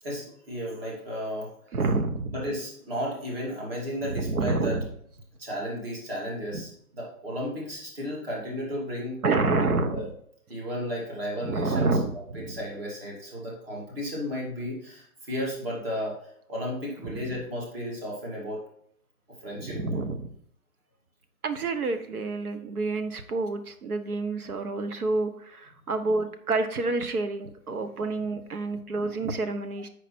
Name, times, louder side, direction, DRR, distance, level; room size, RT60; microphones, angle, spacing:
voice 1, 0.0-1.5 2.3-4.7 5.4-9.3 9.9-10.1 10.5-18.6 19.4-19.8 27.7-27.8 29.0-29.3, equal, 40° right, -3 dB, 2.5 m, -34 dB
voice 2, 1.7-2.3 4.1-4.8 6.5-6.6 9.2-10.1 11.4-12.6 17.0-17.4 19.6-20.3 21.4-29.9, right 3 dB, 70° right, 9 dB, 1.1 m, -28 dB
7.5 x 5.0 x 4.3 m, 0.67 s
hypercardioid pair, 170°, 45 cm